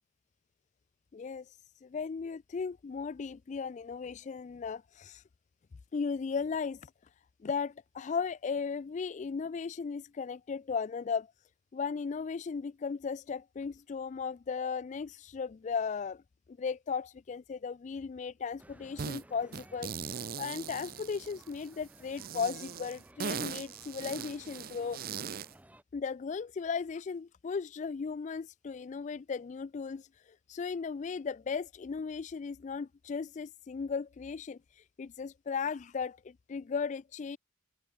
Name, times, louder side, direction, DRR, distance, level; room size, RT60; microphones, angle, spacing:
voice 1, 1.1-1.6 1.8-5.2 5.9-6.9 7.4-11.3 11.7-16.2 16.5-25.2 25.9-37.4, left 5 dB, 40° left, 0.3 m, -36 dB
sound 1, 18.6-25.8, right 1 dB, 10° right, 2.5 m, -57 dB
sound 2, 19.0-19.2 19.5-21.7 22.2-25.5, right 7 dB, 50° right, 0.5 m, -40 dB
open air
head